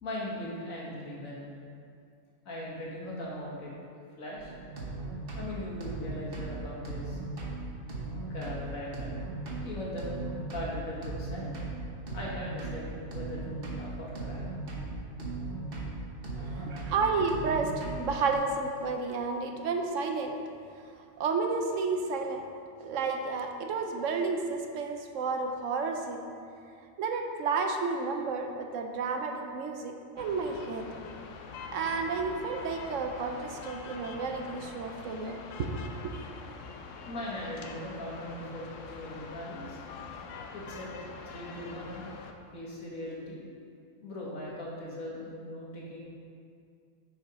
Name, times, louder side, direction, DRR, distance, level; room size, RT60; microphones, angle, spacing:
voice 1, 0.0-1.5 2.5-3.7 4.2-4.5 5.4-7.2 8.1-9.1 9.6-10.1 10.5-11.6 12.1-14.4 16.4-16.9 37.1-39.8 40.5-40.9 41.3-42.1 42.5-43.4 44.0-46.0, left 1 dB, 85° left, -5 dB, 2.0 m, -39 dB
sound 1, 4.4-18.4, right 2 dB, 45° right, 1.3 m, -38 dB
voice 2, 16.4-20.4 21.2-22.4 22.8-26.3 27.0-30.9 31.7-35.7 36.0-36.1, right 4 dB, 70° right, 4 dB, 1.0 m, -31 dB
sound 2, 30.2-42.3, left 5 dB, 70° left, 0.9 m, -44 dB
6.9 x 5.4 x 4.9 m, 2.3 s
omnidirectional pair, 1.4 m